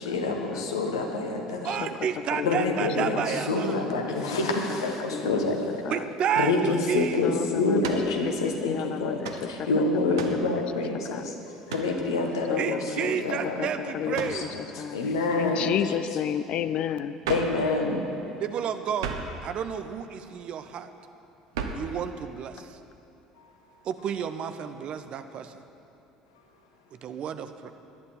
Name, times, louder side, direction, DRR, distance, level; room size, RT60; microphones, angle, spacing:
voice 1, 0.0-1.7 2.4-5.8 6.3-13.7 14.1-14.4 14.7-15.9 17.3-18.0 23.4-23.5, left 3 dB, 75° left, 3 dB, 1.4 m, -27 dB
voice 2, 1.6-3.8 5.9-7.3 12.6-14.5 18.4-19.1 19.4-20.9 21.7-22.8 23.8-25.5 27.0-27.7, right 8 dB, 45° right, 10 dB, 0.8 m, -31 dB
voice 3, 2.3-2.7 3.7-4.3 5.1-5.4 5.8-6.1 7.2-8.1 8.4-9.5 10.2-10.7 11.1-11.2 12.5-13.1 13.6-13.7 13.9-14.5 14.8-15.0 15.4-17.2, left 10 dB, 50° left, 13 dB, 0.5 m, -32 dB
sound 1, 7.8-8.1 9.2-9.5 10.1-10.5 11.7-12.0 14.1-14.4 17.2-17.6 19.0-19.4 21.5-21.9, right 5 dB, 70° right, 1.0 m, -34 dB
17.5 x 11.5 x 4.6 m, 2.7 s
figure-of-eight pair, 60°, 2 cm